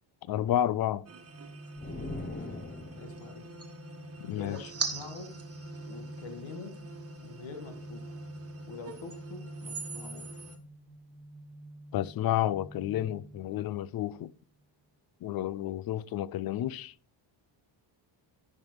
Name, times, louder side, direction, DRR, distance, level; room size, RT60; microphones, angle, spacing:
voice 1, 0.3-1.0 4.2-4.6 11.9-14.3 15.2-16.9, left 12 dB, 55° left, 0.5 m, -30 dB
sound 1, 1.1-10.6, right 4 dB, 30° right, 1.3 m, -43 dB
sound 2, 1.2-14.3, right 1 dB, ahead, 2.0 m, -48 dB
sound 3, 1.8-3.3, left 2 dB, 20° left, 0.9 m, -40 dB
voice 2, 2.1-2.5 3.0-3.5 4.3-5.4 5.9-6.8 7.2-8.2 8.7-10.4, left 3 dB, 75° left, 1.8 m, -45 dB
14.5 x 5.4 x 3.1 m
cardioid pair, 135°, 46 cm